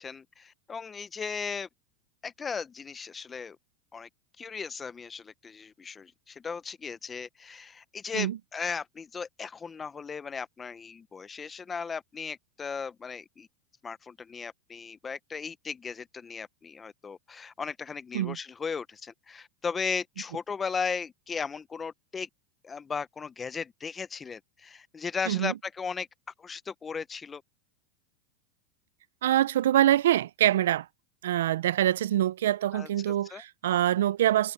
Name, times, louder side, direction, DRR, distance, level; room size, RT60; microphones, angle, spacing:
voice 1, 0.0-1.7 2.2-3.6 3.9-4.1 4.4-13.5 13.8-22.3 22.6-26.1 26.4-27.4 32.7-33.4, left 5 dB, 15° left, 0.8 m, -36 dB
voice 2, 29.2-30.9 31.2-34.5, right 12 dB, 90° right, 0.5 m, -25 dB
supercardioid pair, 135°, 0 cm